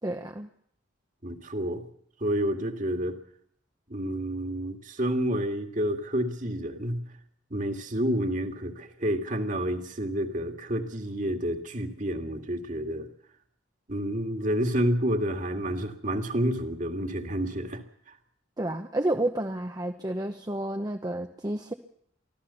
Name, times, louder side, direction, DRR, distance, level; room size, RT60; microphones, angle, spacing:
voice 1, 0.0-0.5 18.6-21.7, right 1 dB, 20° right, 5 dB, 0.9 m, -30 dB
voice 2, 1.2-1.8 2.2-3.1 3.9-7.0 7.5-13.1 13.9-17.8, equal, 40° right, 6 dB, 2.1 m, -29 dB
24.0 x 15.5 x 7.0 m, 0.66 s
head